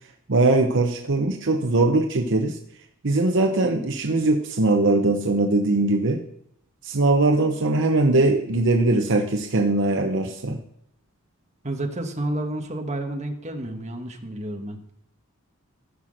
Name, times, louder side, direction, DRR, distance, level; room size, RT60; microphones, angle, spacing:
voice 1, 0.3-2.6 3.0-6.2 6.8-10.6, right 2 dB, 60° right, 4 dB, 0.9 m, -21 dB
voice 2, 11.6-14.8, right 1 dB, 30° right, 3 dB, 1.4 m, -30 dB
15.0 x 5.9 x 6.4 m, 0.75 s
head